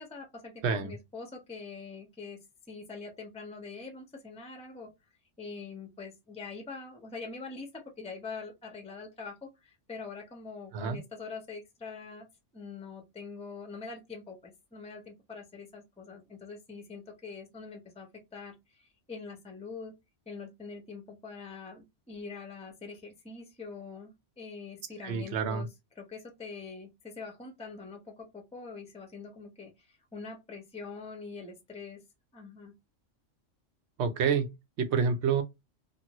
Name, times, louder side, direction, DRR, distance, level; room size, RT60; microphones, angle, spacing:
voice 1, 0.0-2.4 2.7-4.9 5.4-12.3 12.5-19.9 20.3-25.7 26.0-32.0 32.3-32.7, left 4 dB, 5° left, 0.5 m, -44 dB
voice 2, 0.6-0.9 10.7-11.0 25.0-25.7 34.0-35.4, right 6 dB, 65° right, 0.9 m, -28 dB
2.6 x 2.6 x 2.9 m
omnidirectional pair, 1.3 m